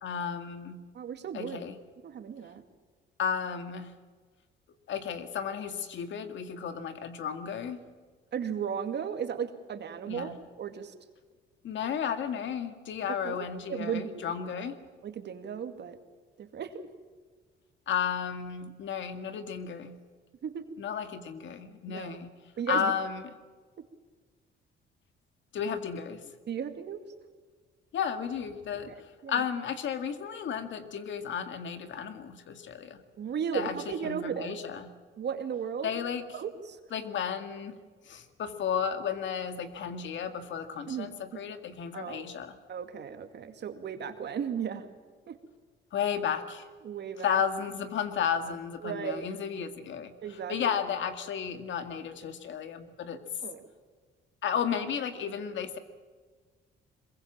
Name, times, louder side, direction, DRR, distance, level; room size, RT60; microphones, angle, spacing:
voice 1, 0.0-0.8 1.3-1.8 3.2-3.9 4.9-7.8 10.1-10.4 11.6-14.7 17.9-19.9 20.8-22.3 22.7-23.2 25.5-26.2 27.9-33.0 33.5-34.9 35.8-36.4 36.9-37.8 38.1-42.6 45.9-46.7 47.2-53.2 54.4-55.8, left 7 dB, 70° left, 9 dB, 2.0 m, -33 dB
voice 2, 0.9-1.6 2.0-2.6 8.3-10.9 13.2-13.4 13.7-14.3 15.0-16.0 16.4-16.9 20.4-20.7 21.9-22.2 22.6-22.9 26.5-27.0 28.9-29.0 29.2-29.4 33.2-34.6 35.2-35.9 36.3-36.8 40.9-41.1 41.9-42.3 42.7-44.8 45.3-45.4 46.8-47.4 48.8-49.3 50.2-50.8 53.4-53.7, right 7 dB, 60° right, 8 dB, 2.3 m, -35 dB
22.0 x 22.0 x 7.4 m, 1.5 s
cardioid pair, 90°, 20 cm